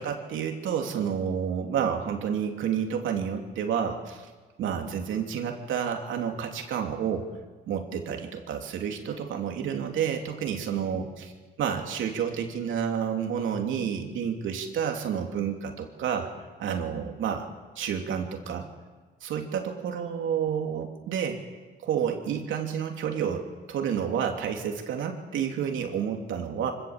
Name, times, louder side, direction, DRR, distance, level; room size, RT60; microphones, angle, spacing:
voice 1, 0.0-4.3 4.6-7.3 7.7-11.3 11.6-16.3 16.6-17.5 17.8-18.7 19.2-21.4 21.8-26.7, right 8 dB, 80° right, 3 dB, 3.0 m, -30 dB
25.5 x 17.0 x 7.5 m, 1.3 s
cardioid pair, 90°, 20 cm